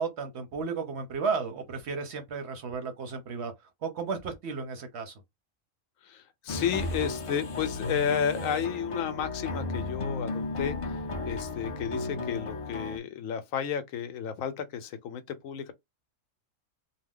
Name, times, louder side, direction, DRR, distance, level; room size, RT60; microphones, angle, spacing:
voice 1, 0.0-3.5 3.8-5.1, right 5 dB, 60° right, 0.8 m, -33 dB
voice 2, 6.0-15.7, left 8 dB, 75° left, 0.9 m, -32 dB
sound 1, 6.5-13.0, left 2 dB, 55° left, 0.3 m, -34 dB
2.4 x 2.1 x 3.5 m
omnidirectional pair, 1.5 m